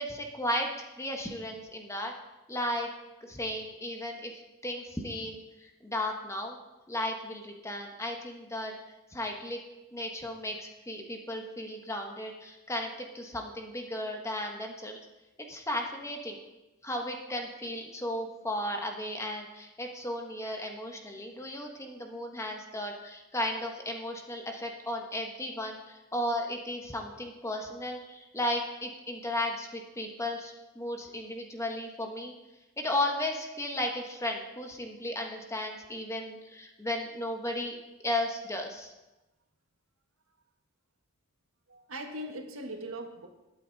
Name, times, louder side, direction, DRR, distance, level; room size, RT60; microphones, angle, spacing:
voice 1, 0.0-2.1 2.5-2.9 3.2-4.3 4.6-6.6 6.9-8.7 9.1-9.6 9.9-12.9 13.1-15.0 15.5-16.4 16.8-32.3 32.8-37.8 38.0-38.9, left 1 dB, 15° left, 2 dB, 1.4 m, -35 dB
voice 2, 41.7-43.3, right 1 dB, 75° right, 3 dB, 1.7 m, -40 dB
21.0 x 8.6 x 4.1 m, 1.0 s
head